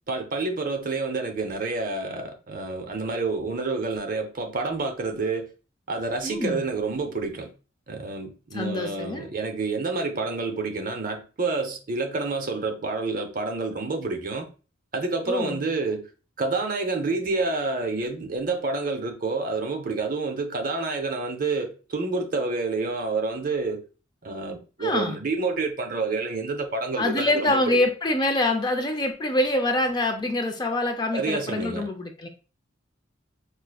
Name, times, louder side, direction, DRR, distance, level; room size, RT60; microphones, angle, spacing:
voice 1, 0.1-5.5 5.9-7.5 7.9-14.5 14.9-16.1 16.4-23.8 24.2-27.8 31.1-31.9, right 3 dB, 45° right, 0.6 m, -28 dB
voice 2, 6.2-6.7 8.5-9.3 15.3-15.6 24.8-25.2 27.0-32.3, left 1 dB, 20° left, 0.4 m, -25 dB
4.7 x 2.5 x 2.2 m
head